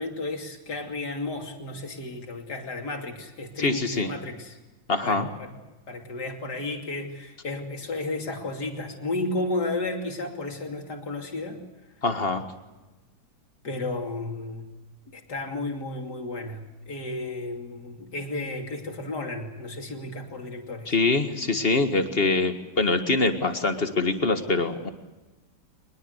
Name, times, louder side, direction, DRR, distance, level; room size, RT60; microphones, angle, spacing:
voice 1, 0.0-4.6 5.0-5.5 5.9-11.6 13.6-14.7 15.1-20.9, left 2 dB, 55° left, 3 dB, 3.4 m, -33 dB
voice 2, 3.6-4.1 4.9-5.3 12.0-12.4 20.9-24.9, left 3 dB, 30° left, 8 dB, 1.8 m, -24 dB
24.0 x 21.0 x 8.1 m, 1.1 s
omnidirectional pair, 2.1 m